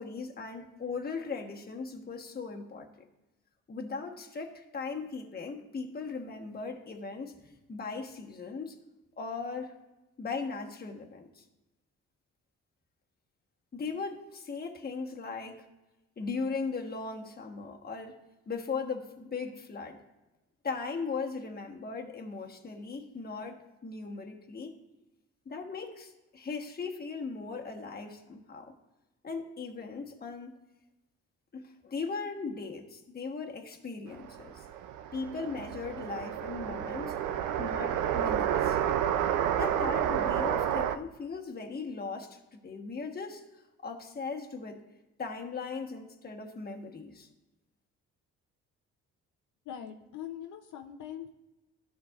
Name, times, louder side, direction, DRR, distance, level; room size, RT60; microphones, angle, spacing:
voice 1, 0.0-3.1 3.7-7.4 7.7-8.8 9.2-9.7 10.2-11.4 13.7-15.7 16.2-18.2 18.5-20.0 20.6-24.7 25.4-28.7 29.2-30.6 31.5-34.6 35.1-37.1 37.6-38.8 39.6-44.8 45.2-47.3, left 4 dB, 30° left, 2 dB, 1.2 m, -38 dB
sound 1, 34.2-41.0, right 10 dB, 90° right, 0.5 m, -30 dB
voice 2, 49.7-51.3, left 10 dB, 75° left, 5 dB, 0.7 m, -42 dB
12.5 x 5.7 x 2.4 m, 1.0 s
cardioid pair, 90°, 30 cm